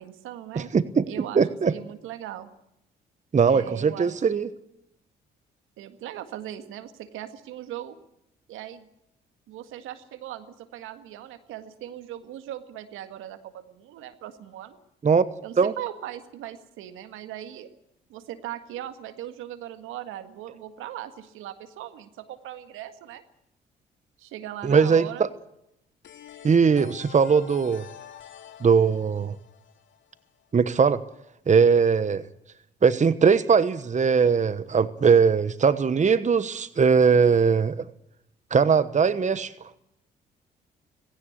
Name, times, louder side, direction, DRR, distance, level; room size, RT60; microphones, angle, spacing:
voice 1, 0.0-0.7 1.1-2.5 3.5-4.5 5.8-8.0 8.5-8.9 9.5-14.8 15.4-17.7 18.1-23.2 24.2-25.3, right 12 dB, 75° right, 10 dB, 1.8 m, -39 dB
voice 2, 0.5-1.1 1.3-1.7 3.3-4.5 15.0-15.3 15.6-15.7 24.6-25.3 26.4-27.9 28.6-29.3 30.5-31.0 31.5-32.2 32.8-37.9 38.5-39.5, right 6 dB, 35° right, 15 dB, 1.1 m, -20 dB
sound 1, 26.0-30.7, left 10 dB, 60° left, 2.9 m, -47 dB
18.5 x 17.0 x 9.6 m, 0.82 s
hypercardioid pair, 50°, 21 cm